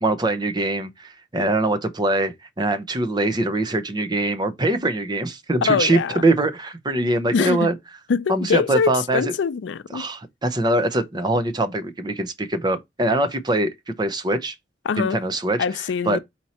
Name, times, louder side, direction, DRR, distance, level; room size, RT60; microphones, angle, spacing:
voice 1, 0.0-7.8 8.3-9.3 9.9-14.5 15.0-15.6 16.0-16.2, right 2 dB, 25° right, 0.6 m, -23 dB
voice 2, 5.6-6.2 7.3-7.7 8.1-10.1 14.9-15.2 15.6-16.2, left 5 dB, 90° left, 0.4 m, -23 dB
4.4 x 2.9 x 4.2 m
head